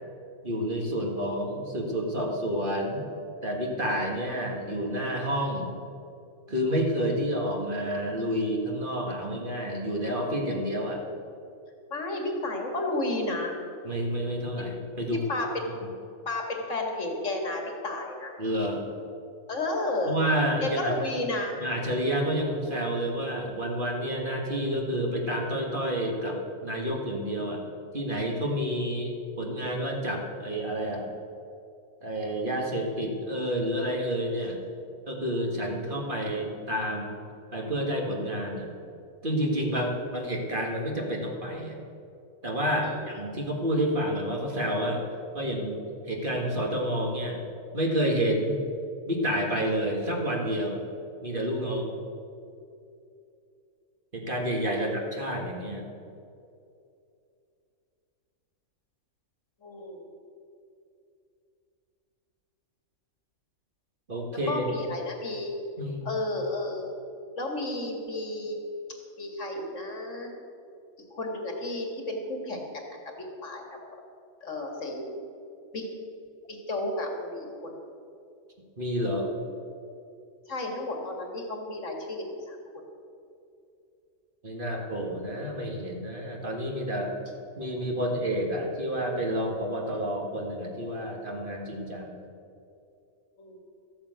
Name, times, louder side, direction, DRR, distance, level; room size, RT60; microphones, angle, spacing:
voice 1, 0.4-3.0 3.4-5.7 6.5-11.0 13.8-15.2 18.4-18.8 20.1-20.9 21.6-27.7 27.9-31.1 32.0-34.6 35.1-37.2 37.5-38.7 39.2-41.8 42.4-45.0 45.3-47.4 47.7-48.6 49.1-50.8 51.2-51.9 54.1-55.9 64.1-64.6 65.8-66.1 78.8-79.3 84.4-87.1 87.6-92.2, equal, 35° right, 0 dB, 2.0 m, -29 dB
voice 2, 11.9-13.6 15.3-15.8 16.3-18.4 19.5-20.2 20.6-21.6 39.7-39.9 42.8-43.0 51.7-51.9 54.8-54.9 59.6-60.0 64.5-65.5 66.0-66.9 67.4-68.6 69.2-70.3 71.1-73.6 74.4-75.1 75.7-75.9 76.5-77.7 80.5-82.6 93.4-93.6, left 2 dB, 60° left, 2 dB, 2.3 m, -32 dB
14.0 x 8.7 x 8.1 m, 2.6 s
omnidirectional pair, 1.5 m